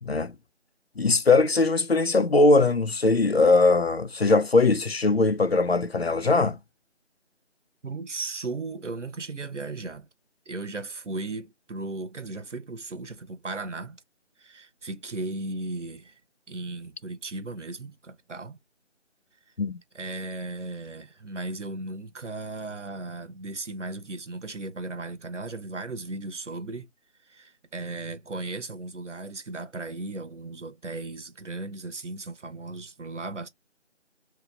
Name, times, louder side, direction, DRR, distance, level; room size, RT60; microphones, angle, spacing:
voice 1, 0.0-0.3 1.0-6.6 19.6-19.8, left 3 dB, 55° left, 0.5 m, -21 dB
voice 2, 7.8-10.1 10.5-14.0 14.4-16.2 16.5-18.6 19.9-26.9 27.2-33.5, right 2 dB, 75° right, 1.0 m, -36 dB
3.1 x 3.0 x 3.8 m
figure-of-eight pair, 175°, 36 cm